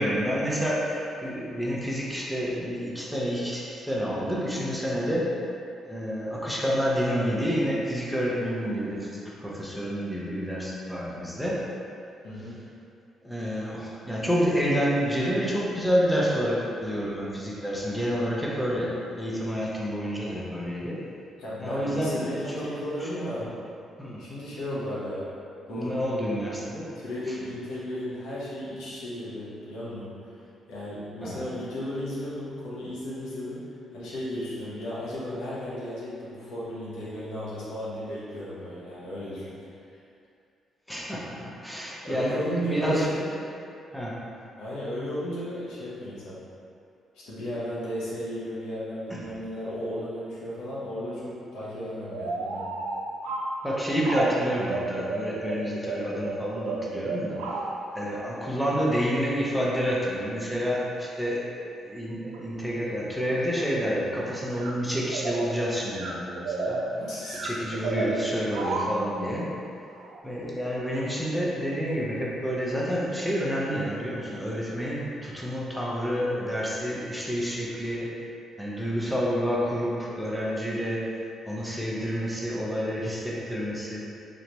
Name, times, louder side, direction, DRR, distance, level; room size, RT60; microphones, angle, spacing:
voice 1, 0.0-5.4 5.8-11.7 13.2-21.0 21.6-22.7 23.0-23.5 24.0-24.2 25.7-26.9 31.2-31.5 40.9-43.1 43.9-44.2 49.1-49.2 53.6-57.4 57.9-61.5 61.8-66.8 67.4-69.5 70.2-78.1 78.6-81.1 81.5-84.0, equal, ahead, -6 dB, 0.7 m, -29 dB
voice 2, 12.2-12.6 21.4-23.4 24.2-25.3 25.7-26.0 26.9-33.7 33.9-39.6 42.0-43.3 44.6-46.4 47.1-52.7 66.9-67.6, equal, 85° left, -8 dB, 1.1 m, -35 dB
sound 1, 52.1-57.9 62.3-62.4 63.3-63.9 64.6-65.7 65.9-69.1 70.0-70.2, right 3 dB, 85° right, 0.4 m, -32 dB
3.8 x 3.3 x 3.0 m, 2.5 s
cardioid pair, 90°, 0 cm